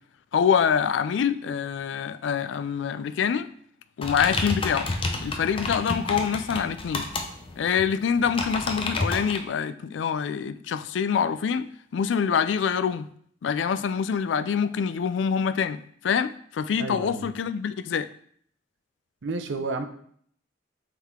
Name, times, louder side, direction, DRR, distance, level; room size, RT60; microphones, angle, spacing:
voice 1, 0.3-3.5 4.0-4.9 5.2-7.1 7.6-11.7 11.9-13.1 13.4-18.1, left 7 dB, 85° left, 0.4 m, -25 dB
sound 1, 4.0-9.4, left 2 dB, 30° left, 0.6 m, -30 dB
voice 2, 16.8-17.3 19.2-19.8, right 3 dB, 80° right, 0.6 m, -31 dB
7.1 x 3.7 x 3.7 m
head